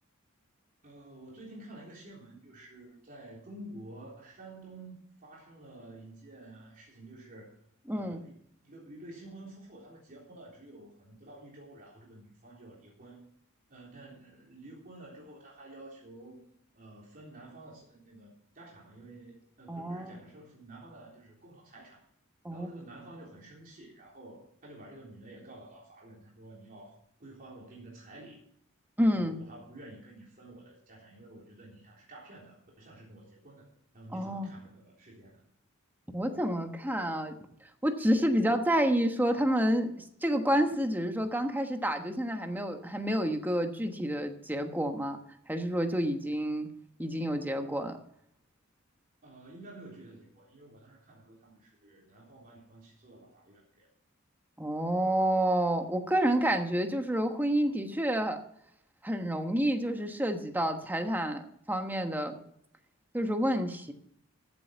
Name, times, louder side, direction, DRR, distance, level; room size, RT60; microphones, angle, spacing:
voice 1, 0.8-7.6 7.9-8.3 8.6-13.3 13.7-16.4 16.7-22.0 22.5-28.4 29.0-33.7 33.9-35.4 49.2-53.9, right 1 dB, 40° right, -4 dB, 3.6 m, -50 dB
voice 2, 7.9-8.2 19.7-20.2 22.4-22.7 29.0-29.4 34.1-34.5 36.1-37.3 37.8-45.2 45.5-46.7 47.0-48.0 54.6-58.4 59.0-61.4 61.7-62.3 63.1-63.9, equal, 10° right, 6 dB, 1.2 m, -29 dB
14.0 x 7.9 x 5.2 m, 0.70 s
head